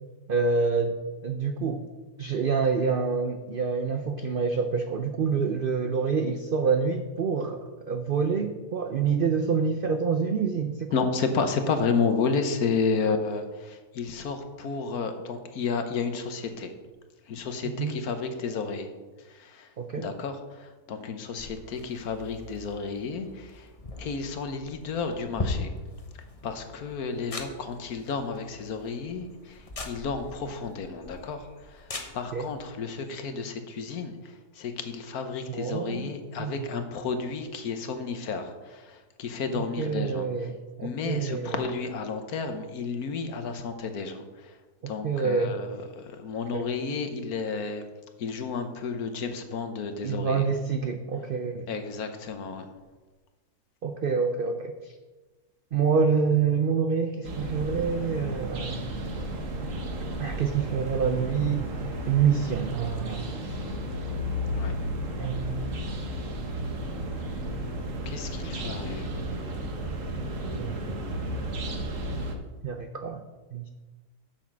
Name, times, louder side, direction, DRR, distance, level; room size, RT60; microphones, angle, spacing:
voice 1, 0.3-1.0 1.2-1.8 2.2-10.9 17.8-17.9 19.8-20.1 32.3-32.5 35.5-36.1 36.4-36.7 39.5-41.6 45.0-45.6 46.5-46.7 50.0-51.7 53.8-54.9 55.7-58.9 60.2-61.7 62.1-63.6 65.2-65.7 70.6-70.8 72.6-73.2 73.5-73.7, right 5 dB, 75° right, 7 dB, 0.5 m, -27 dB
voice 2, 10.9-16.7 17.3-18.9 19.3-19.7 19.9-23.7 24.0-25.7 26.4-29.6 29.8-31.5 31.7-31.8 32.1-34.1 34.6-40.2 40.8-44.2 44.9-47.8 48.2-50.4 51.7-52.7 64.4-64.7 68.1-69.1, left 5 dB, 70° left, 7 dB, 1.4 m, -31 dB
sound 1, 21.4-32.7, left 2 dB, 30° left, 0.8 m, -40 dB
sound 2, 57.2-72.3, right 1 dB, 55° right, 1.4 m, -33 dB
7.4 x 7.2 x 6.0 m, 1.3 s
omnidirectional pair, 1.7 m